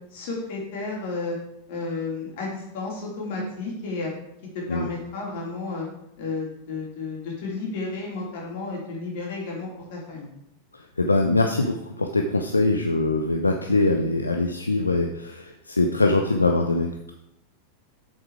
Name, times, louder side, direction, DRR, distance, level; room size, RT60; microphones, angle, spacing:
voice 1, 0.1-1.4 1.7-4.1 4.5-5.9 6.2-10.3, left 3 dB, 50° left, -2 dB, 3.6 m, -32 dB
voice 2, 11.0-17.1, left 2 dB, 80° left, 4 dB, 0.7 m, -23 dB
7.8 x 7.4 x 4.9 m, 0.79 s
figure-of-eight pair, 90°, 0 cm